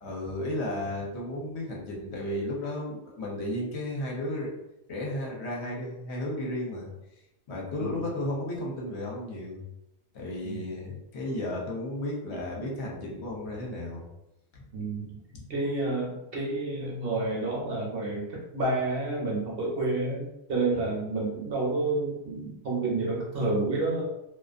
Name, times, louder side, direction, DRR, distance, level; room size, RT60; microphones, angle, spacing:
voice 1, 0.0-4.5 4.9-6.9 7.5-9.6 10.1-14.0 14.5-14.6 15.3-15.5 20.7-20.8, left 1 dB, 65° left, -2 dB, 0.9 m, -34 dB
voice 2, 14.7-15.1 15.5-18.2 18.5-24.0, right 2 dB, 55° right, -3 dB, 0.8 m, -29 dB
2.4 x 2.3 x 2.4 m, 0.87 s
omnidirectional pair, 1.3 m